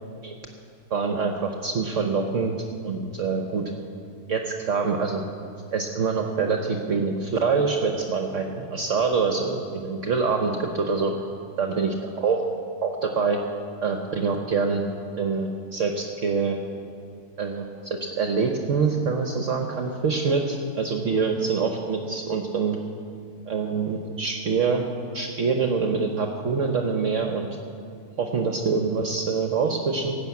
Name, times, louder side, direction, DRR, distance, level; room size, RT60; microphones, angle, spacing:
voice 1, 0.9-2.5 2.8-3.6 4.3-5.2 5.7-11.1 11.6-12.4 12.8-13.4 13.8-14.8 15.2-16.6 17.4-22.8 23.5-24.8 25.1-27.5 28.2-30.2, right 5 dB, 55° right, 3 dB, 1.1 m, -25 dB
17.5 x 6.3 x 8.2 m, 2.4 s
omnidirectional pair, 1.7 m